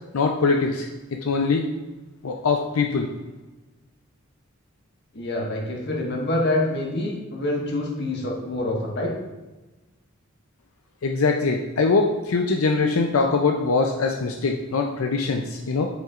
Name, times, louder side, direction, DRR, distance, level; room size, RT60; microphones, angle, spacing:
voice 1, 0.1-0.9 1.2-1.7 2.2-3.1 11.0-15.9, left 4 dB, 90° left, 3 dB, 0.5 m, -22 dB
voice 2, 5.1-9.1, left 1 dB, 55° left, -1 dB, 1.5 m, -26 dB
8.4 x 6.1 x 2.4 m, 1.2 s
head